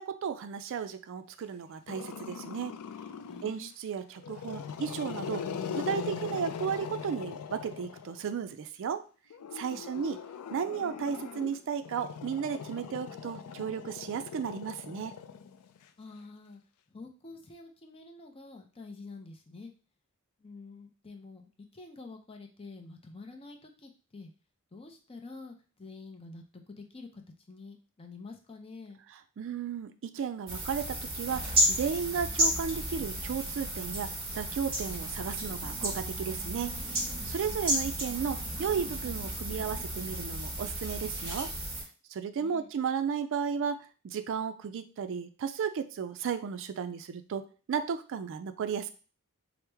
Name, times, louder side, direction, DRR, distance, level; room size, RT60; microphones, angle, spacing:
voice 1, 0.0-2.8 3.4-5.4 5.7-9.0 9.5-10.2 10.5-15.1 29.1-34.1 34.4-36.8 37.2-41.5 42.1-47.4 47.7-48.9, right 7 dB, 60° right, 10 dB, 0.3 m, -34 dB
Growling, 1.9-3.6 4.2-8.3 9.3-15.8, left 7 dB, 85° left, 0.4 m, -40 dB
voice 2, 3.3-3.7 9.7-10.1 16.0-16.6 16.9-19.7 20.4-24.3 24.7-27.2 27.5-29.0 42.4-42.7, left 3 dB, 25° left, 4 dB, 0.5 m, -48 dB
sound 1, 30.5-41.8, right 1 dB, 25° right, 1.3 m, -33 dB
4.6 x 2.0 x 3.3 m, 0.36 s
head